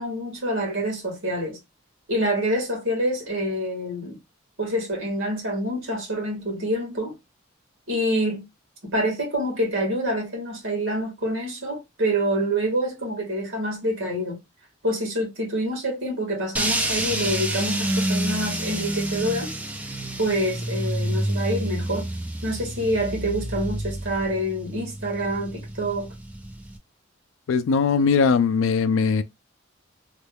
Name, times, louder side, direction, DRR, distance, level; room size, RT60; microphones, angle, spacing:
voice 1, 0.0-1.6 2.1-4.2 4.6-7.1 7.9-8.4 8.9-14.4 14.8-19.5 20.2-22.1 22.4-26.1, right 1 dB, 75° right, 1.6 m, -26 dB
sound 1, 16.6-26.8, right 1 dB, 5° right, 0.4 m, -28 dB
voice 2, 27.5-29.2, left 5 dB, 70° left, 0.3 m, -20 dB
3.1 x 2.2 x 3.3 m
head